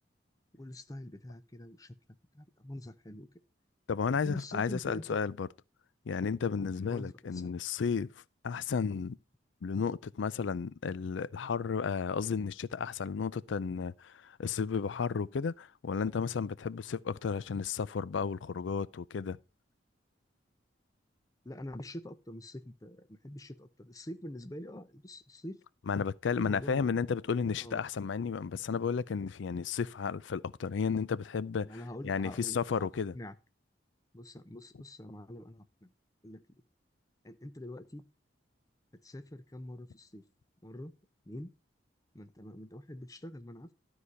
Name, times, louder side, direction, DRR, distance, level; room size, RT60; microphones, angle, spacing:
voice 1, 0.5-2.0 2.3-3.3 4.1-5.2 6.9-7.5 21.4-25.6 26.4-27.0 27.6-27.8 31.6-32.9 33.1-33.3 34.1-35.9 36.2-36.6 37.2-38.1 39.0-40.2 40.6-40.9 41.3-41.5 42.1-43.7, left 1 dB, 20° left, 0.7 m, -45 dB
voice 2, 3.9-5.5 6.1-8.1 8.4-9.2 9.6-19.4 25.9-31.7 32.0-33.1, left 6 dB, 90° left, 0.4 m, -33 dB
12.5 x 4.9 x 5.4 m
head